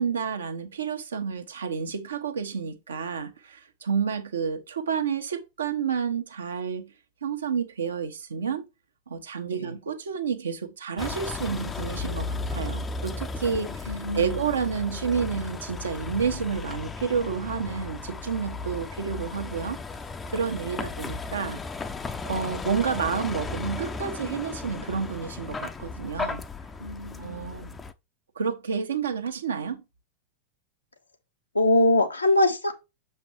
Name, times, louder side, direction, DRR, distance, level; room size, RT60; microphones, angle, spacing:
voice 1, 0.0-6.9 7.2-8.7 9.1-19.8 20.3-21.6 22.2-26.4 27.2-27.7 28.3-29.8, right 6 dB, 70° right, 1.1 m, -30 dB
Vehicle, 11.0-27.9, left 4 dB, 15° left, 0.6 m, -35 dB
voice 2, 13.9-14.4 20.7-20.9 26.8-27.8 31.5-32.7, left 2 dB, 80° left, 1.2 m, -24 dB
6.9 x 5.7 x 3.1 m
figure-of-eight pair, 90°, 0 cm